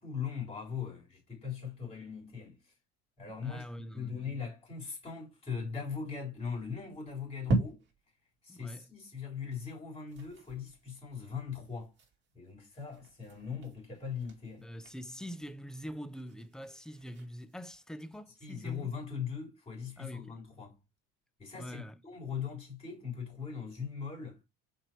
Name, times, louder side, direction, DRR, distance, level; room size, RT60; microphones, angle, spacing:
voice 1, 0.0-2.6 3.2-3.7 3.9-7.8 8.4-11.9 12.3-14.7 18.4-20.8 21.4-24.4, left 6 dB, 20° left, 3.6 m, -40 dB
voice 2, 3.4-4.4 8.5-8.9 14.6-18.9 20.0-20.4 21.5-22.0, equal, ahead, 0.5 m, -44 dB
sound 1, 6.3-8.2 8.7-8.8 9.1-9.2 9.5-9.7 9.9-18.6, right 2 dB, 40° right, 2.3 m, -41 dB
6.5 x 4.6 x 4.5 m
cardioid pair, 155°, 30 cm